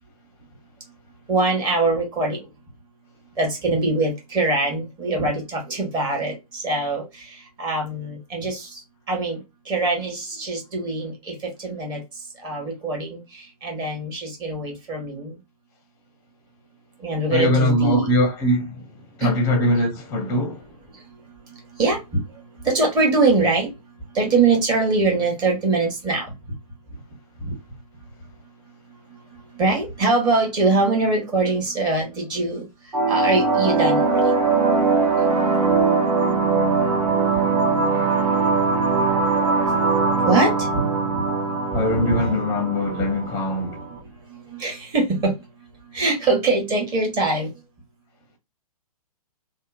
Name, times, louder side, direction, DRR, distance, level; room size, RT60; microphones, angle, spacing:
voice 1, 1.3-2.4 3.4-7.0 7.6-8.7 9.1-9.4 9.7-11.3 11.6-12.0 12.4-13.2 13.6-15.3 17.0-18.1 19.2-19.3 21.8-22.2 22.6-23.7 24.1-26.3 27.4-27.5 29.6-32.6 33.1-34.2 40.3-40.9 42.0-42.3 44.5-45.3 45.9-47.5, right 3 dB, 20° right, 1.0 m, -22 dB
voice 2, 17.3-18.8 19.2-20.6 37.3-37.5 37.9-38.1 41.7-43.8, left 1 dB, 15° left, 0.6 m, -22 dB
sound 1, 32.9-43.9, right 4 dB, 70° right, 0.9 m, -21 dB
2.8 x 2.0 x 2.3 m
figure-of-eight pair, 120°, 20 cm